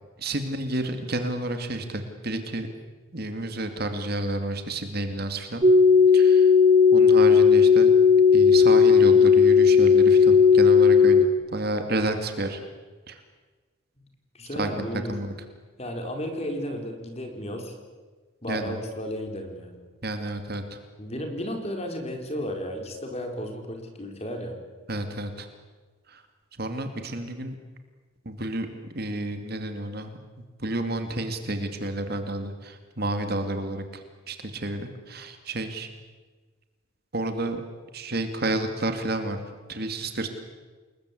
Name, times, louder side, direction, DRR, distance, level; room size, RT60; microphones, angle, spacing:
voice 1, 0.2-2.7 3.1-5.6 6.1-6.5 6.9-7.9 8.3-12.6 13.1-13.2 14.5-15.3 18.5-18.8 20.0-20.8 24.9-25.5 26.1-26.2 26.6-27.6 28.3-28.7 28.9-30.2 30.6-35.9 37.1-37.6 37.9-39.4 39.7-40.3, right 1 dB, 45° right, 7 dB, 2.5 m, -30 dB
sound 1, 5.6-11.3, left 6 dB, 25° right, 0.7 m, -16 dB
voice 2, 14.3-15.1 15.8-17.8 18.4-19.8 21.0-24.5, equal, 30° left, 4 dB, 4.3 m, -33 dB
29.0 x 21.0 x 8.4 m, 1.4 s
head